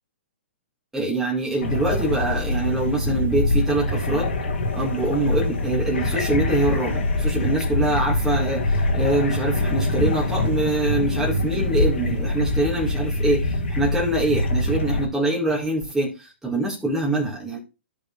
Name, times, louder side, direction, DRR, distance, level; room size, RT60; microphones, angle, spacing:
voice 1, 0.9-4.4 4.7-17.6, right 2 dB, 5° right, -5 dB, 2.2 m, -24 dB
sound 1, 1.6-15.1, left 2 dB, 65° left, 2.1 m, -24 dB
14.5 x 5.2 x 2.4 m, 0.29 s
figure-of-eight pair, 120°, 7 cm